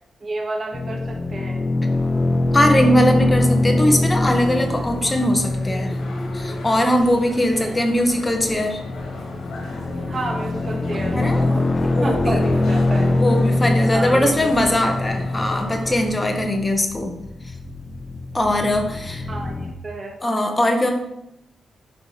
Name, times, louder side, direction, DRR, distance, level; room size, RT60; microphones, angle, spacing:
voice 1, 0.2-1.7 7.5-7.8 10.1-13.2 13.8-14.5 14.9-15.0 16.7-16.8 19.3-20.2, right 2 dB, 40° right, 0 dB, 2.4 m, -30 dB
sound 1, 0.7-19.7, left 2 dB, 35° left, 0.8 m, -23 dB
voice 2, 2.5-6.0 6.3-8.8 11.1-11.5 11.9-12.4 13.0-17.1 18.3-19.3 20.2-20.9, left 1 dB, 20° left, 3 dB, 1.6 m, -20 dB
sound 2, 4.2-16.1, left 1 dB, 75° left, 2.8 m, -35 dB
11.0 x 4.9 x 5.2 m, 0.84 s
cardioid pair, 105°, 0 cm